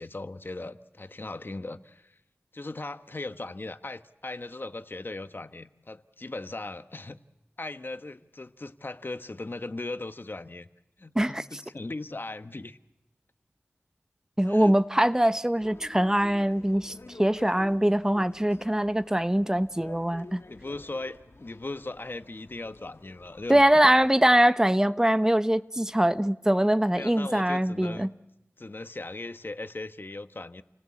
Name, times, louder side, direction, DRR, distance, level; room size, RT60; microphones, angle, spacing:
voice 1, 0.0-2.2 2.5-7.2 7.6-10.7 11.0-12.8 14.5-14.7 20.5-23.6 24.2-24.3 26.9-28.1 28.6-30.6, left 2 dB, 50° left, 1.1 m, -38 dB
voice 2, 14.4-20.4 23.5-28.1, right 1 dB, 10° right, 0.9 m, -23 dB
sound 1, 15.6-24.1, left 2 dB, 65° left, 2.0 m, -49 dB
29.5 x 18.5 x 8.5 m
wide cardioid pair, 60°, 5 cm